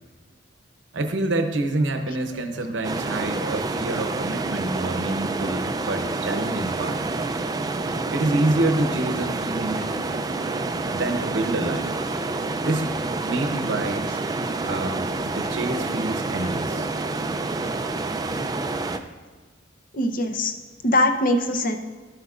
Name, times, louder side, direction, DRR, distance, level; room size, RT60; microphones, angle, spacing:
voice 1, 0.9-7.0 8.1-9.9 10.9-12.0 12.6-12.9 13.2-14.1 14.6-16.9, right 2 dB, 65° right, 6 dB, 0.8 m, -27 dB
sound 1, 2.8-19.0, right 3 dB, 20° right, 0.3 m, -28 dB
voice 2, 16.3-16.9 19.9-20.5 20.8-21.8, left 1 dB, 45° left, 5 dB, 0.7 m, -23 dB
13.0 x 8.0 x 2.4 m, 1.4 s
head